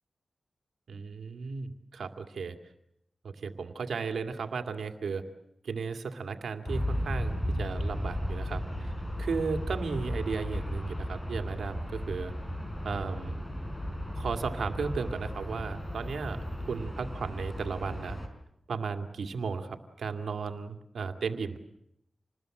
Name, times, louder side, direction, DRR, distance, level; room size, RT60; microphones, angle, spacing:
voice 1, 0.9-2.6 3.2-5.3 5.6-8.9 9.2-12.3 12.8-13.4 14.1-16.4 16.6-18.2 18.7-21.6, right 5 dB, 85° right, 7 dB, 2.2 m, -35 dB
Aircraft, 6.7-18.3, equal, 15° left, 5.3 m, -35 dB
28.0 x 20.5 x 7.7 m, 0.78 s
cardioid pair, 60°, 0 cm